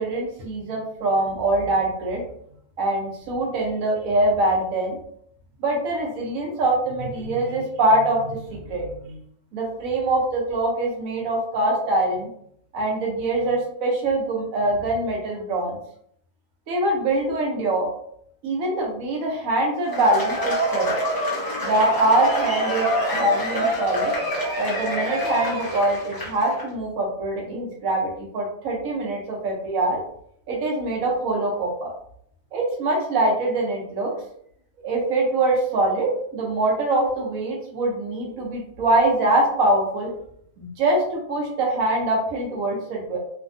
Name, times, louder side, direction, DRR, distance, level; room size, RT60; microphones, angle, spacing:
voice 1, 0.0-2.2 2.8-5.0 5.6-9.2 9.5-12.3 12.7-15.8 16.7-17.9 18.4-21.0 21.6-24.1 24.6-30.0 30.5-31.9 32.5-34.1 34.8-40.1 40.6-43.2, right 2 dB, 70° right, -1 dB, 1.2 m, -23 dB
Cheering / Applause / Crowd, 19.8-26.6, right 1 dB, 20° left, 0.6 m, -26 dB
3.2 x 2.2 x 2.6 m, 0.67 s
omnidirectional pair, 1.5 m